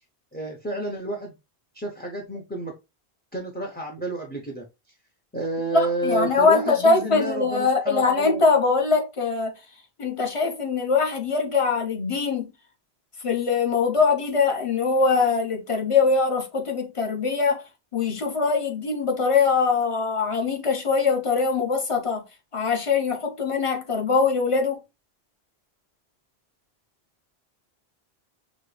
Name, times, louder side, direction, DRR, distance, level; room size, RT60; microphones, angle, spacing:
voice 1, 0.3-1.3 1.7-2.7 3.3-4.7 5.3-8.4, right 1 dB, 10° left, 0.6 m, -30 dB
voice 2, 5.7-9.5 10.0-12.5 13.2-17.6 17.9-22.2 22.5-24.8, left 4 dB, 30° left, 1.0 m, -22 dB
5.9 x 2.3 x 3.3 m
omnidirectional pair, 1.1 m